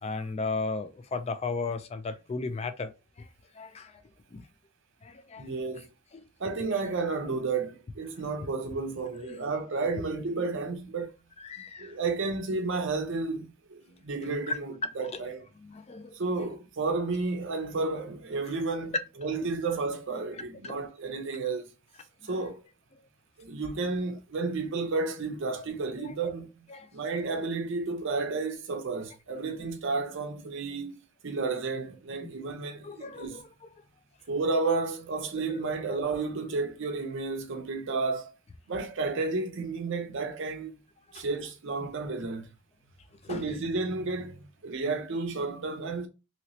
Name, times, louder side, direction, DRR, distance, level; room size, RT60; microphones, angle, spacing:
voice 1, 0.0-2.9 3.2-3.3 3.6-4.0 4.3-4.4 5.0-5.5 9.3-9.4 11.4-12.0 14.5-14.6 15.1-15.2 15.7-16.2 20.6-20.7 22.2-22.4 26.0-26.1 26.7-26.9 32.2-32.3 32.8-33.4 35.5-35.7 36.0-36.1 41.1-41.2 43.2-43.5, left 3 dB, 30° left, 0.3 m, -35 dB
voice 2, 5.4-5.9 6.4-11.1 11.8-15.5 16.1-21.7 22.2-22.6 23.4-26.5 26.9-33.4 34.3-38.3 38.7-40.8 41.1-42.5 43.3-46.1, right 3 dB, 55° right, 0.5 m, -32 dB
3.0 x 3.0 x 2.7 m
head